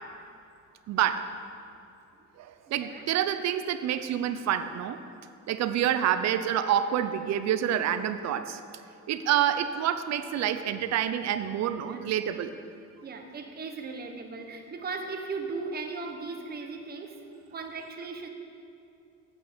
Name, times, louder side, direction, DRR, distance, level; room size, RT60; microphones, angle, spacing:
voice 1, 0.9-1.3 2.4-5.0 5.5-8.6 9.1-12.5, right 10 dB, 65° right, 11 dB, 0.6 m, -27 dB
voice 2, 2.7-3.0 11.8-12.0 13.0-17.2 17.5-18.3, right 4 dB, 35° right, 4 dB, 1.0 m, -37 dB
9.0 x 8.1 x 6.7 m, 2.6 s
cardioid pair, 160°, 29 cm